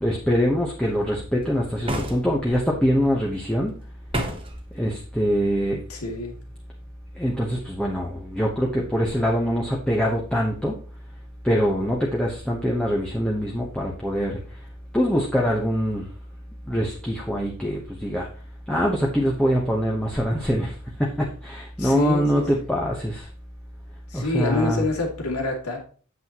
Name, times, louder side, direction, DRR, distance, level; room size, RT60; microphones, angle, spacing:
voice 1, 0.0-3.7 4.8-5.8 7.2-10.7 11.4-14.3 14.9-16.0 16.7-18.3 18.7-20.7 21.0-23.2 24.1-24.8, equal, 5° left, -3 dB, 1.0 m, -24 dB
sound 1, 1.9-2.6 4.1-4.6, right 1 dB, 25° right, 1.2 m, -29 dB
voice 2, 5.9-6.3 21.8-22.4 24.1-25.8, left 3 dB, 85° left, 1 dB, 2.5 m, -26 dB
8.3 x 7.9 x 3.0 m, 0.41 s
head